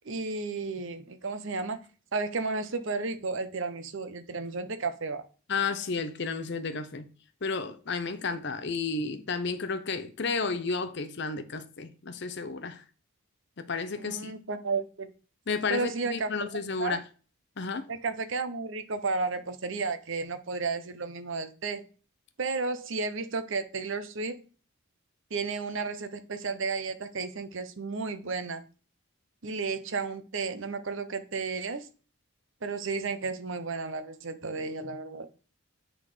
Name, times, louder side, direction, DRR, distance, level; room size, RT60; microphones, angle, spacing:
voice 1, 0.1-1.8 2.1-5.2 14.0-15.1 15.7-16.5 16.8-17.0 17.9-21.8 22.4-24.4 25.3-28.6 29.4-31.9 32.6-35.3, right 4 dB, 60° right, 0.7 m, -33 dB
voice 2, 5.5-7.1 7.4-12.8 13.6-14.4 15.5-17.0 17.6-17.9, left 4 dB, 50° left, 0.7 m, -32 dB
8.2 x 3.8 x 4.9 m
head